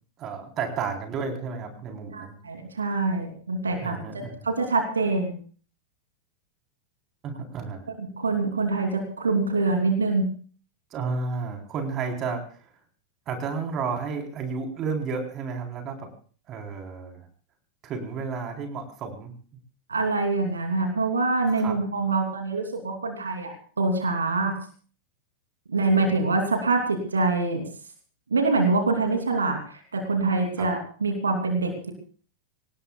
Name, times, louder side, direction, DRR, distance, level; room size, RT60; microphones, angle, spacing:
voice 1, 0.2-2.4 3.8-4.3 7.2-7.9 10.9-12.7 13.3-16.1 16.5-17.3 17.8-19.3 21.6-21.8 30.6-30.7, right 5 dB, 30° right, 3 dB, 3.9 m, -32 dB
voice 2, 2.1-5.3 8.0-10.3 19.9-24.5 25.7-27.6 28.3-31.9, right 3 dB, 75° right, 4 dB, 3.0 m, -25 dB
25.0 x 18.5 x 2.4 m, 0.42 s
figure-of-eight pair, 90°, 0 cm